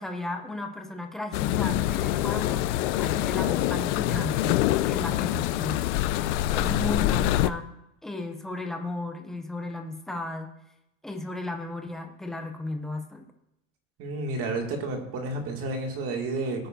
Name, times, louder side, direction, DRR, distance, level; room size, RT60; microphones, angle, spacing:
voice 1, 0.0-6.3 6.5-7.7 8.0-10.5 11.0-13.2, left 2 dB, ahead, 4 dB, 0.4 m, -35 dB
sound 1, 1.3-7.5, left 14 dB, 65° left, 0.5 m, -25 dB
voice 2, 14.0-16.7, right 2 dB, 35° right, 2 dB, 2.1 m, -31 dB
18.5 x 9.0 x 2.6 m, 0.84 s
supercardioid pair, 155°, 40 cm